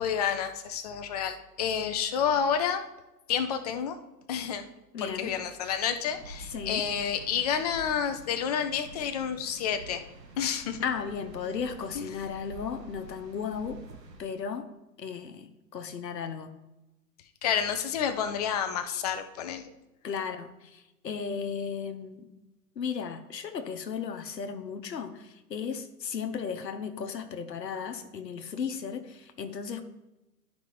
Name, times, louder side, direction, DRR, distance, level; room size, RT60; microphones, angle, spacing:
voice 1, 0.0-2.8 3.3-4.0 4.3-4.7 5.0-10.0 10.4-10.8 11.9-12.1 17.4-19.7, left 8 dB, 25° left, 8 dB, 0.4 m, -29 dB
voice 2, 4.9-5.3 6.5-6.8 10.8-13.8 14.2-14.7 15.0-16.5 20.0-22.3 22.8-29.8, left 6 dB, 85° left, 7 dB, 0.9 m, -35 dB
sound 1, 6.0-14.2, right 2 dB, 80° right, 1.4 m, -48 dB
11.5 x 5.2 x 3.0 m, 0.99 s
hypercardioid pair, 115°, 49 cm